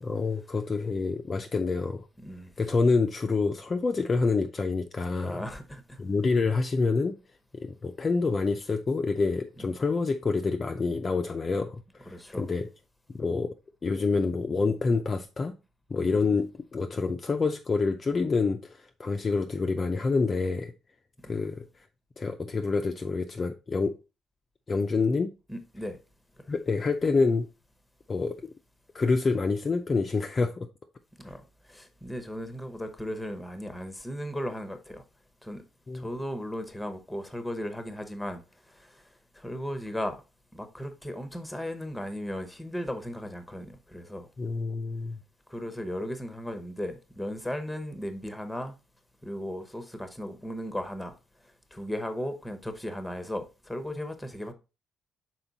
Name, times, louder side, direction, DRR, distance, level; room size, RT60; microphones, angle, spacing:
voice 1, 0.0-2.1 2.6-5.4 6.0-7.2 7.5-12.6 13.2-13.5 13.8-15.5 15.9-20.7 21.2-21.6 22.2-23.9 24.7-25.3 26.5-27.5 28.1-28.5 28.9-30.7 31.2-31.3 35.9-36.1 44.4-45.2, left 4 dB, 25° left, 0.4 m, -27 dB
voice 2, 2.2-2.5 5.2-6.0 12.1-12.5 16.0-16.3 21.2-21.5 25.5-26.0 31.2-35.0 35.4-35.6 35.9-38.4 38.7-39.0 39.3-40.2 40.5-44.3 45.5-48.7 49.2-51.2 51.7-54.5, equal, 5° left, 0.9 m, -36 dB
5.9 x 4.4 x 3.9 m
cardioid pair, 145°, 0 cm